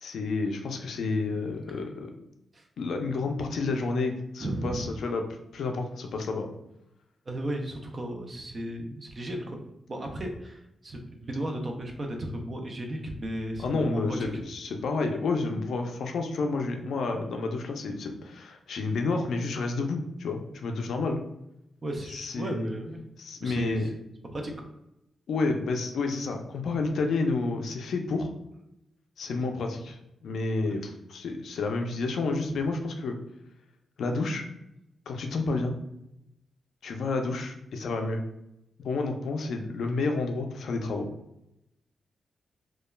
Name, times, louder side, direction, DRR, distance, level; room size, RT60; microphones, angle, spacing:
voice 1, 0.0-2.1 2.8-5.2 5.5-6.5 13.6-21.2 22.1-22.7 23.2-23.9 25.3-28.3 29.2-30.0 30.2-33.2 34.0-34.4 35.1-35.7 36.8-38.2 38.8-41.1, left 3 dB, 70° left, 4 dB, 0.3 m, -30 dB
voice 2, 4.4-4.9 7.3-9.6 9.9-14.4 21.8-23.0 23.4-23.9 24.3-24.5, right 1 dB, 30° right, 3 dB, 0.3 m, -35 dB
2.2 x 2.1 x 3.1 m, 0.85 s
wide cardioid pair, 175°, 0 cm